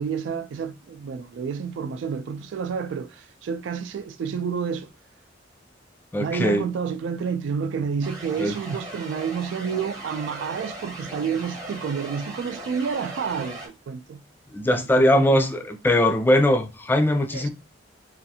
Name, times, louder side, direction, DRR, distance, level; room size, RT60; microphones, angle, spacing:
voice 1, 0.0-4.9 6.2-14.2 14.8-15.5 17.3-17.5, right 6 dB, 85° right, 0.3 m, -29 dB
voice 2, 6.1-6.6 8.4-8.6 14.5-17.5, left 1 dB, 10° left, 0.3 m, -20 dB
sound 1, 8.0-13.7, right 1 dB, 20° right, 0.8 m, -38 dB
2.6 x 2.4 x 2.7 m
head